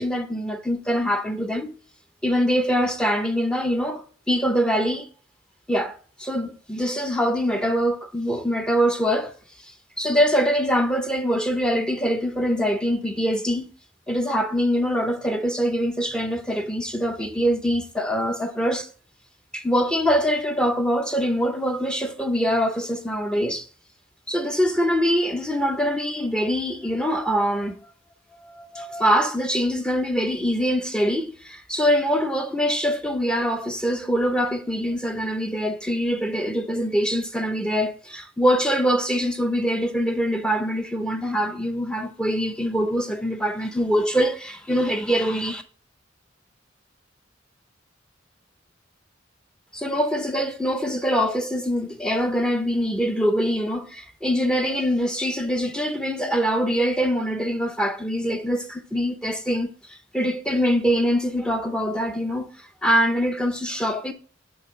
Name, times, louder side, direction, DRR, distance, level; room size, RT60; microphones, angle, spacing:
voice 1, 0.0-1.7 2.2-5.1 5.7-9.3 10.0-13.7 14.1-18.9 19.5-23.7 24.3-27.7 28.4-45.6 49.7-62.5 62.8-64.1, equal, 5° left, 0.5 m, -24 dB
7.9 x 3.1 x 3.8 m
head